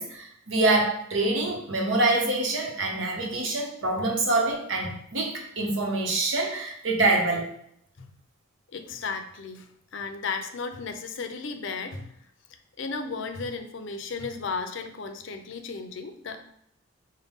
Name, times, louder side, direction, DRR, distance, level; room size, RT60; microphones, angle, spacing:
voice 1, 0.0-7.5, right 2 dB, 70° right, 0 dB, 0.9 m, -25 dB
voice 2, 8.7-12.3 12.8-16.4, left 4 dB, 65° left, 6 dB, 0.5 m, -35 dB
5.1 x 2.2 x 3.6 m, 0.71 s
head